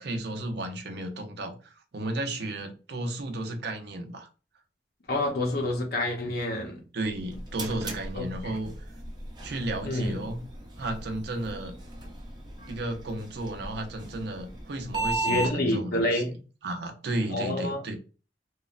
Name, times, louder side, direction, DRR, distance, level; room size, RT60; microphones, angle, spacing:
voice 1, 0.0-4.3 6.9-8.7 9.4-10.4 10.8-11.8 12.7-16.2 16.6-17.9, right 1 dB, 65° right, 0.5 m, -33 dB
voice 2, 5.1-6.9 8.1-8.5 9.8-10.2 12.6-12.8 15.2-16.4 17.3-17.8, left 1 dB, 60° left, 0.8 m, -28 dB
sound 1, 7.0-15.5, right 2 dB, 25° right, 0.6 m, -36 dB
3.1 x 2.0 x 2.4 m
head